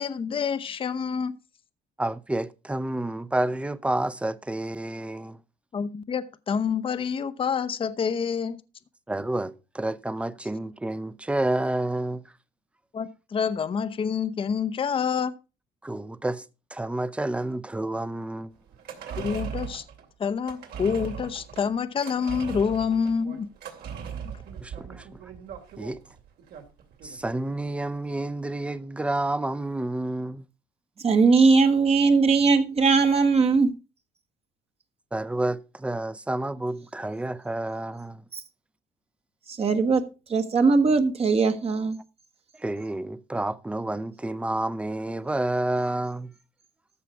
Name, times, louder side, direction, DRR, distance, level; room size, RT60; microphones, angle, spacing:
voice 1, 0.0-1.3 5.7-8.6 12.9-15.3 19.2-19.8 20.2-23.5, left 6 dB, 30° left, 0.7 m, -27 dB
voice 2, 2.0-5.4 9.1-12.2 15.8-16.4 16.7-18.5 24.6-25.2 25.8-26.0 27.0-30.4 35.1-38.2 42.6-46.3, right 1 dB, 5° right, 0.6 m, -29 dB
sound 1, 18.7-27.3 27.6-27.7, right 8 dB, 70° right, 2.7 m, -39 dB
voice 3, 31.0-33.7 38.3-38.4 39.5-40.0 40.3-42.0, right 4 dB, 35° right, 1.2 m, -20 dB
14.0 x 5.7 x 4.8 m
cardioid pair, 110°, 17 cm